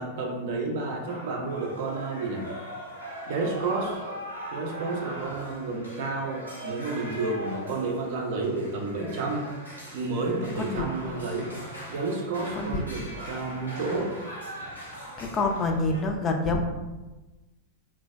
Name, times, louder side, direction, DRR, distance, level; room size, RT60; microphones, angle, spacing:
voice 1, 0.0-2.5 3.3-4.0 4.5-9.5 9.9-11.5 11.9-14.1, right 3 dB, 50° right, 1 dB, 0.5 m, -30 dB
sound 1, 1.1-16.0, equal, 85° right, 0.8 m, -40 dB
voice 2, 15.2-16.6, left 3 dB, 25° left, 3 dB, 0.3 m, -27 dB
3.2 x 2.1 x 2.2 m, 1.1 s
figure-of-eight pair, 90°, 0 cm